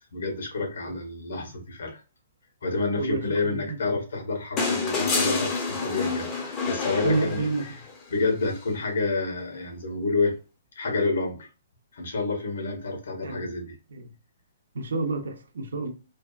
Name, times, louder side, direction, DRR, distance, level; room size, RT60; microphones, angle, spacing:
voice 1, 0.1-2.0 2.6-7.8 8.1-10.3 10.8-11.5 11.9-13.7, left 3 dB, 75° left, 1.0 m, -29 dB
sound 1, 4.6-7.9 9.4-9.5, left 4 dB, 20° left, 0.5 m, -28 dB
voice 2, 7.0-7.6 13.2-13.4 13.9-14.1 14.7-15.9, right 3 dB, 85° right, 0.6 m, -28 dB
2.6 x 2.3 x 2.3 m
hypercardioid pair, 165°, 0 cm